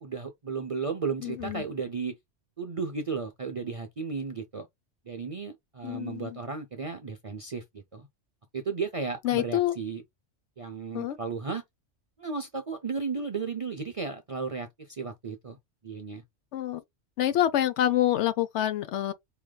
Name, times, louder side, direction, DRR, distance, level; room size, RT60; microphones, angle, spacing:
voice 1, 0.0-2.2 2.6-4.7 5.1-8.1 8.5-10.0 10.6-11.6 12.2-15.6 15.8-16.2, right 4 dB, 45° right, 0.4 m, -34 dB
voice 2, 1.2-1.6 5.8-6.4 9.2-9.8 10.9-11.2 16.5-16.8 17.2-19.1, left 12 dB, 70° left, 0.9 m, -27 dB
4.9 x 2.8 x 2.2 m
omnidirectional pair, 1.3 m